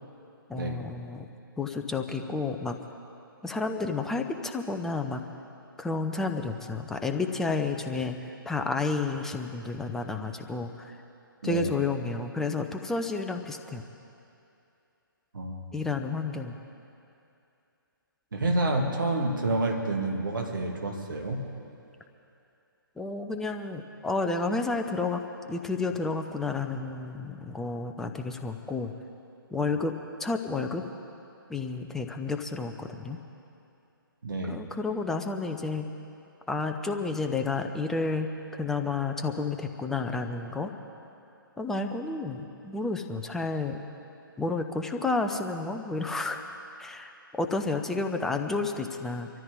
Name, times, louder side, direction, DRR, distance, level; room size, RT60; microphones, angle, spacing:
voice 1, 0.5-1.3 1.6-2.8 3.4-5.2 5.8-8.2 8.5-11.0 11.4-13.8 15.7-16.6 23.0-25.2 25.5-28.9 29.5-30.8 31.5-33.2 34.4-35.9 36.5-38.3 38.5-40.7 41.6-43.8 44.4-46.4 46.8-49.3, left 3 dB, 5° left, 5 dB, 0.5 m, -31 dB
voice 2, 11.4-11.8 15.3-15.7 18.3-21.4 34.2-34.6, right 2 dB, 60° right, 2 dB, 2.1 m, -29 dB
24.5 x 13.5 x 3.7 m, 2.7 s
figure-of-eight pair, 135°, 12 cm